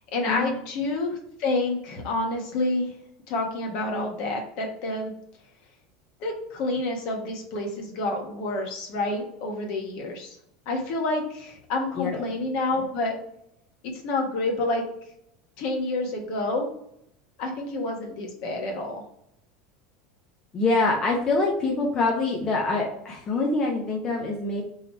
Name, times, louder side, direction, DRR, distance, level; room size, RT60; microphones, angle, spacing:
voice 1, 0.1-2.9 3.3-5.1 6.2-10.4 10.7-13.2 14.0-14.8 15.6-16.7 17.4-19.0, left 2 dB, 60° left, 2 dB, 1.2 m, -28 dB
voice 2, 20.5-24.6, left 3 dB, 30° left, -1 dB, 0.9 m, -25 dB
3.8 x 2.9 x 4.5 m, 0.75 s
supercardioid pair, 135°, 2 cm